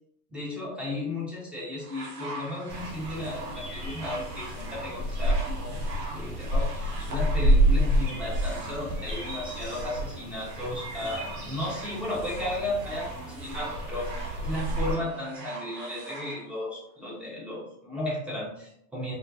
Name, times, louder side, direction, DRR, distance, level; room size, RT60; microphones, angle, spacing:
voice 1, 0.3-5.8 6.1-19.1, left 1 dB, 5° right, -6 dB, 0.4 m, -34 dB
sound 1, 1.8-16.4 17.3-17.4, right 2 dB, 85° right, 0.7 m, -42 dB
sound 2, 2.7-14.9, right 1 dB, 55° right, 1.1 m, -29 dB
2.4 x 2.1 x 2.5 m, 0.76 s
figure-of-eight pair, 85°, 48 cm